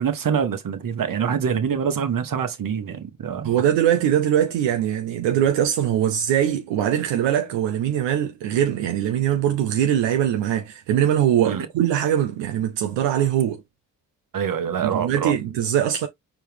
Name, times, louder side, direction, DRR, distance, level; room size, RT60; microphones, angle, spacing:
voice 1, 0.0-3.5 11.4-11.7 14.3-15.3, right 7 dB, 50° right, 1.3 m, -25 dB
voice 2, 3.4-13.6 14.8-16.1, right 10 dB, 80° right, 0.7 m, -22 dB
4.5 x 3.0 x 3.4 m
hypercardioid pair, 45°, 43 cm